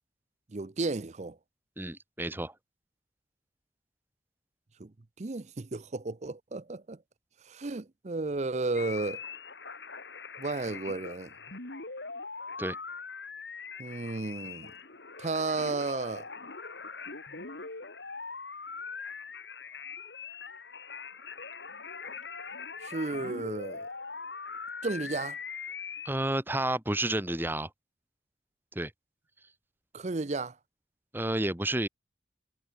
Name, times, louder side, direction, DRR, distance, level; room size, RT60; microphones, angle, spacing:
voice 1, 0.5-1.4 4.8-7.0 7.4-9.2 10.4-11.3 13.8-14.7 15.2-16.3 22.8-23.9 24.8-25.4 29.9-30.6, right 3 dB, 40° right, 0.6 m, -33 dB
voice 2, 1.8-2.5 12.6-12.8 26.0-27.7 28.7-28.9 31.1-31.9, right 1 dB, 10° right, 1.6 m, -30 dB
sound 1, 8.7-26.1, left 5 dB, 70° left, 3.0 m, -42 dB
head